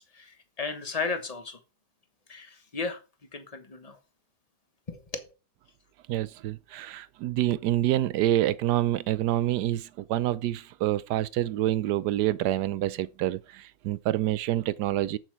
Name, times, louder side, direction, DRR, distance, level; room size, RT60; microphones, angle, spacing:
voice 1, 0.0-1.6 2.3-3.0 3.3-4.0 4.9-5.2, left 4 dB, 25° left, 1.1 m, -35 dB
voice 2, 6.1-15.2, right 13 dB, 75° right, 1.2 m, -27 dB
8.1 x 7.5 x 4.6 m
omnidirectional pair, 1.8 m